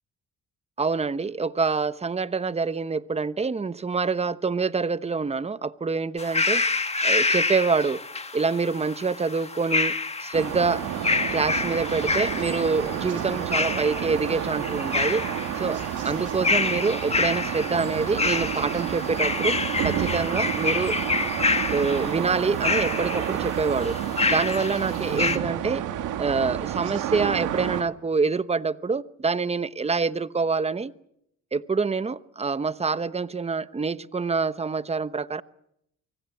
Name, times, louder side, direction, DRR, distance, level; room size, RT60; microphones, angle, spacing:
voice 1, 0.8-6.6 7.0-8.0 8.3-9.9 10.2-10.8 11.3-15.3 15.6-15.8 16.0-19.6 19.8-20.9 21.7-24.0 24.2-25.9 26.2-30.9 31.5-35.4, right 4 dB, 20° right, 15 dB, 1.0 m, -26 dB
sound 1, 6.2-25.4, left 3 dB, 20° left, 1.8 m, -28 dB
sound 2, 10.3-27.8, right 11 dB, 90° right, 1.9 m, -30 dB
24.5 x 24.5 x 7.3 m, 0.76 s
cardioid pair, 90°, 30 cm